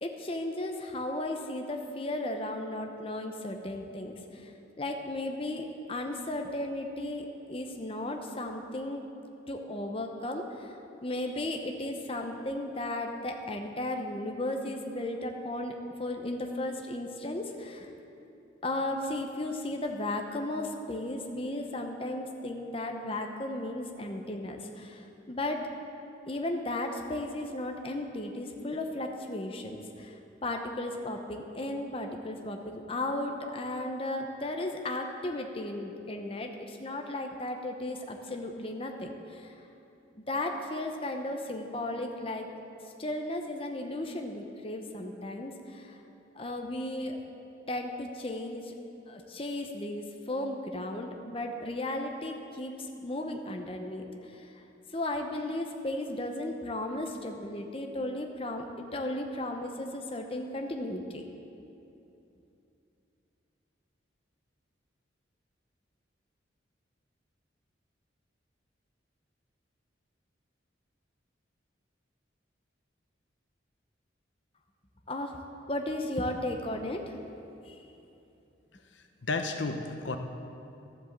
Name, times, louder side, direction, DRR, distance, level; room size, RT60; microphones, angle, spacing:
voice 1, 0.0-4.5 4.8-9.1 9.5-17.9 18.6-25.8 26.3-39.7 40.3-42.5 43.0-46.0 46.3-47.2 47.7-48.7 49.1-54.6 54.9-58.6 58.9-61.2 75.1-75.4 75.7-77.2 77.6-77.9, left 1 dB, 30° left, 3 dB, 0.8 m, -35 dB
voice 2, 78.9-80.2, left 3 dB, 75° left, 6 dB, 0.8 m, -33 dB
13.0 x 8.1 x 7.4 m, 2.8 s
head